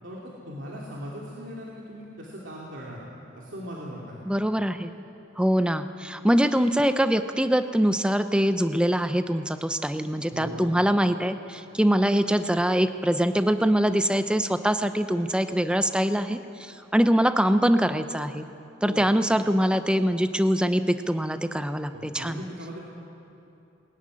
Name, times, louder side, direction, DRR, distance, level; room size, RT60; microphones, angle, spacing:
voice 1, 0.0-3.1 3.3-4.3 10.3-10.7 18.9-19.1 21.9-22.8, equal, 75° right, -4 dB, 2.9 m, -39 dB
voice 2, 4.3-5.0 5.4-18.4 18.8-22.4, equal, 5° right, 9 dB, 0.6 m, -23 dB
21.0 x 14.0 x 9.8 m, 3.0 s
head